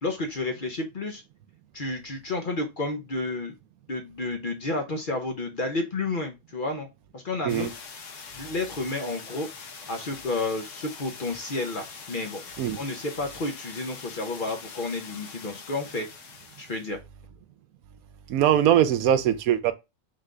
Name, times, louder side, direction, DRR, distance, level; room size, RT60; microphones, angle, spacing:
voice 1, 0.0-1.2 1.7-3.5 3.9-6.9 7.1-7.7 8.3-12.4 12.8-16.1 16.6-17.0, left 2 dB, 45° left, 0.7 m, -31 dB
sound 1, 7.5-16.9, left 5 dB, 65° left, 1.1 m, -43 dB
voice 2, 18.3-19.7, right 10 dB, 85° right, 1.1 m, -21 dB
3.8 x 3.4 x 3.7 m
omnidirectional pair, 1.5 m